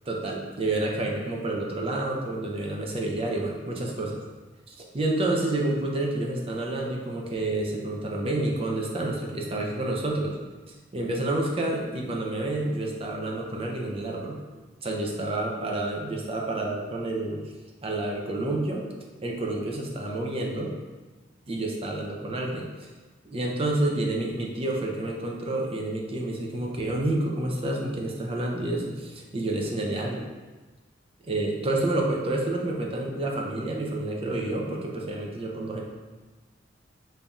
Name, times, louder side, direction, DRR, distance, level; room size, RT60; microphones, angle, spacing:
voice 1, 0.1-4.2 4.7-10.4 10.7-14.4 14.8-17.5 17.8-18.9 19.2-20.7 21.5-22.7 23.2-30.2 31.3-35.8, right 2 dB, 30° right, -1 dB, 0.6 m, -29 dB
5.2 x 2.7 x 2.3 m, 1.3 s
head